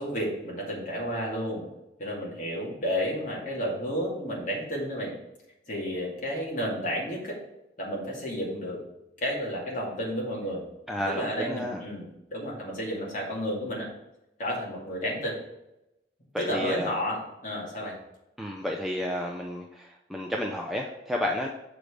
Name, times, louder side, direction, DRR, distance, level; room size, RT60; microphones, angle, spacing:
voice 1, 0.0-1.7 2.0-5.1 5.7-7.4 7.8-8.8 9.2-10.6 11.1-13.9 14.4-15.4 16.4-18.0, equal, 45° left, -3 dB, 2.3 m, -31 dB
voice 2, 10.9-11.8 16.3-16.9 18.4-21.5, left 1 dB, ahead, -1 dB, 0.5 m, -31 dB
6.4 x 5.0 x 5.0 m, 0.92 s
head